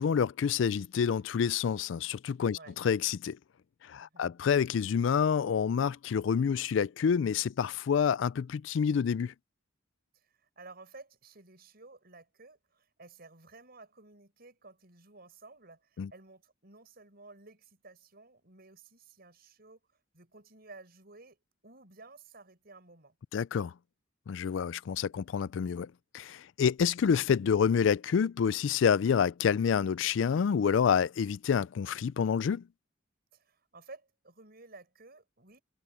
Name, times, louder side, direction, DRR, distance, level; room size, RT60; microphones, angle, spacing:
voice 1, 0.0-3.4 3.8-9.3 16.0-16.1 23.3-23.7 24.3-32.6, left 7 dB, 70° left, 0.4 m, -28 dB
voice 2, 4.0-4.3 10.1-19.8 20.1-21.4 21.6-23.2 33.3-35.6, right 3 dB, 55° right, 6.6 m, -54 dB
head